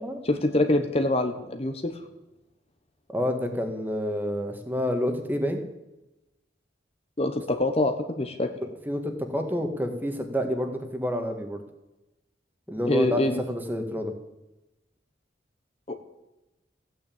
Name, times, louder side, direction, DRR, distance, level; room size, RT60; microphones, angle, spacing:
voice 1, 0.2-2.0 7.2-8.5 12.9-13.4 15.9-16.0, left 1 dB, 35° left, 7 dB, 1.1 m, -25 dB
voice 2, 3.1-5.6 8.9-11.6 12.7-14.1, left 1 dB, 10° right, 5 dB, 1.8 m, -28 dB
15.0 x 9.3 x 8.7 m, 0.97 s
head